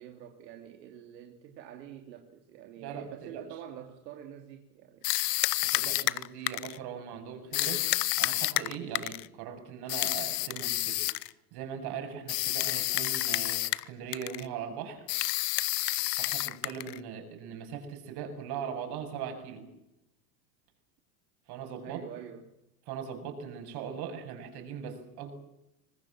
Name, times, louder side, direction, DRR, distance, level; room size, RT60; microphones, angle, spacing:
voice 1, 0.0-5.1 21.8-22.5, right 10 dB, 80° right, 3 dB, 3.2 m, -47 dB
voice 2, 2.8-3.6 5.6-7.8 8.2-11.3 11.5-15.1 16.2-19.7 21.5-22.0 22.9-25.3, right 7 dB, 50° right, 6 dB, 7.4 m, -40 dB
sound 1, 5.0-6.8 7.5-9.3 9.9-11.3 12.3-13.9 14.1-14.5 15.1-17.0, left 19 dB, 75° left, 1.1 m, -29 dB
25.0 x 20.5 x 7.4 m, 0.90 s
supercardioid pair, 120°, 49 cm